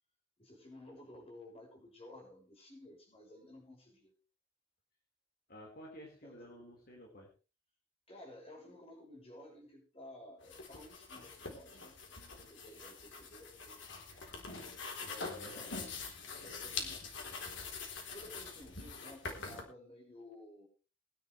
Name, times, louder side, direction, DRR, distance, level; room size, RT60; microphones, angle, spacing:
voice 1, 0.4-4.1 6.2-6.5 8.1-14.3 15.0-15.8 16.2-17.3 18.1-20.7, left 1 dB, 30° left, 0 dB, 6.7 m, -54 dB
voice 2, 5.5-7.3 15.2-15.5 19.4-19.6, equal, 55° left, -2 dB, 4.8 m, -52 dB
sound 1, 10.4-19.6, left 4 dB, 80° left, 3.9 m, -44 dB
22.0 x 10.5 x 3.4 m, 0.33 s
head